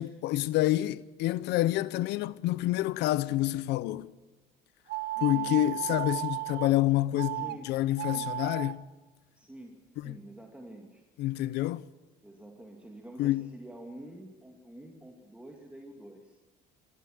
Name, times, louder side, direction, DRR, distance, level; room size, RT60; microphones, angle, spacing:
voice 1, 0.0-4.2 5.2-8.8 10.0-10.2 11.2-11.8 13.2-13.5, left 15 dB, 85° left, 0.7 m, -28 dB
sound 1, 4.9-6.7 7.2-7.6 7.9-8.7, right 17 dB, 70° right, 1.1 m, -34 dB
voice 2, 5.1-5.6 7.3-7.7 7.9-8.3 9.3-11.0 12.2-16.4, right 1 dB, 5° right, 2.4 m, -48 dB
25.0 x 14.5 x 7.8 m
cardioid pair, 110°, 17 cm